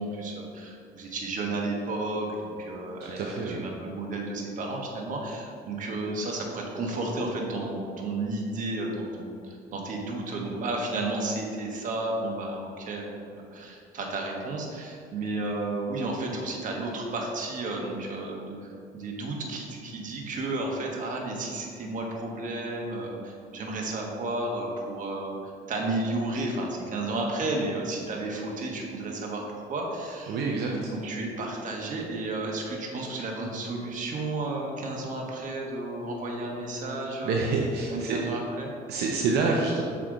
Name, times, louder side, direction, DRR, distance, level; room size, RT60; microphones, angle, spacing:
voice 1, 0.0-13.1 13.5-30.4 30.7-37.5 37.9-38.7, right 2 dB, 50° right, 0 dB, 1.2 m, -32 dB
voice 2, 3.0-3.6 30.3-30.7 37.2-38.2 38.9-39.8, right 4 dB, 75° right, -1 dB, 0.6 m, -27 dB
5.8 x 4.7 x 3.8 m, 2.4 s
cardioid pair, 110°, 17 cm